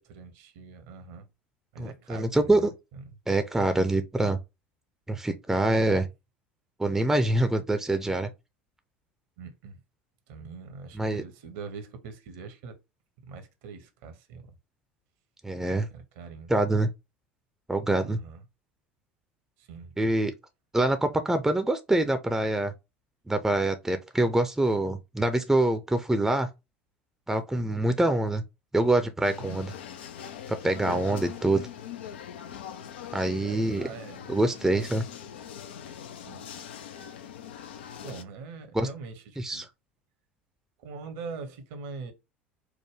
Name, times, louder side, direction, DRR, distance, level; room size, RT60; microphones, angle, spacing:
voice 1, 0.1-1.3 1.7-3.0 9.4-9.8 10.3-12.8 13.2-14.5 15.9-16.5 17.9-18.4 19.6-20.0 29.4-29.6 31.1-31.3 33.7-34.2 34.6-34.9 36.3-36.4 38.0-39.7 40.8-42.1, right 5 dB, 60° right, 0.9 m, -42 dB
voice 2, 1.8-2.7 3.3-4.4 5.1-6.1 6.8-8.3 10.9-11.2 15.4-15.9 16.5-16.9 17.7-18.2 20.0-20.3 20.7-22.7 23.3-26.5 27.3-28.4 28.7-29.7 30.5-31.6 33.1-33.9 34.3-35.0 38.7-38.9 39.4-39.7, right 2 dB, 5° right, 0.6 m, -25 dB
sound 1, 29.2-38.2, left 9 dB, 65° left, 0.5 m, -42 dB
4.7 x 2.2 x 3.2 m
figure-of-eight pair, 70°, 6 cm